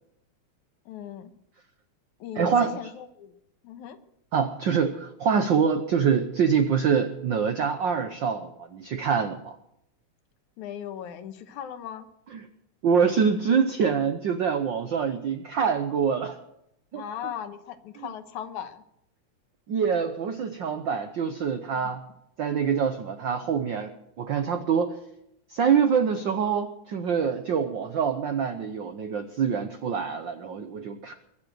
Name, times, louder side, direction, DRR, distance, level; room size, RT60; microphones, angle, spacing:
voice 1, 0.9-1.3 2.2-3.3 3.6-4.0 10.6-12.1 16.9-18.8 21.8-21.9, left 9 dB, 85° left, 9 dB, 2.5 m, -38 dB
voice 2, 2.4-2.9 4.3-9.5 12.3-12.5 12.8-16.4 16.9-17.0 18.0-18.1 19.7-22.0 22.4-23.9 24.2-25.0 25.5-31.1, right 6 dB, 80° right, 8 dB, 1.0 m, -25 dB
23.0 x 7.8 x 7.8 m, 0.79 s
omnidirectional pair, 3.4 m